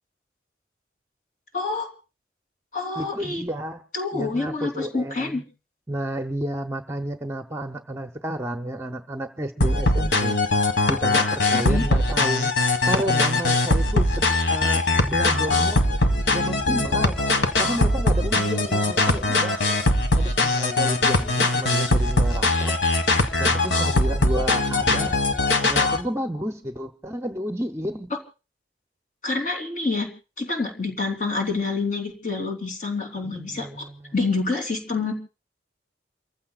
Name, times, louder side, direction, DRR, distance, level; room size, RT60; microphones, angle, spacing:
voice 1, 1.5-1.9 2.7-3.4 3.9-5.4 11.5-11.8 29.2-30.1 30.4-33.9 34.1-35.1, left 3 dB, 45° left, 1 dB, 3.5 m, -27 dB
voice 2, 3.0-3.8 4.1-5.4 5.9-10.4 10.9-12.5 12.9-15.9 16.3-17.2 17.6-19.6 20.1-22.8 23.4-25.2 25.6-28.1 33.2-34.1, right 1 dB, 15° right, 7 dB, 0.8 m, -31 dB
sound 1, 9.6-26.0, left 2 dB, 75° left, 1.7 m, -21 dB
29.5 x 15.0 x 2.4 m, 0.33 s
head